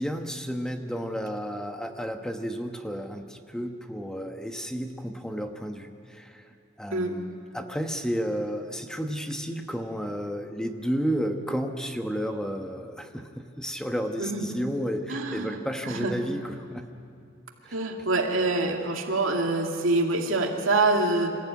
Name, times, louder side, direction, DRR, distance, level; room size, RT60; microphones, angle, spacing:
voice 1, 0.0-16.9 17.7-17.8, equal, 5° left, 5 dB, 1.1 m, -32 dB
voice 2, 15.1-15.6 15.9-16.1 17.7-21.4, right 2 dB, 80° right, 2 dB, 2.3 m, -25 dB
27.0 x 15.0 x 9.3 m, 2.4 s
head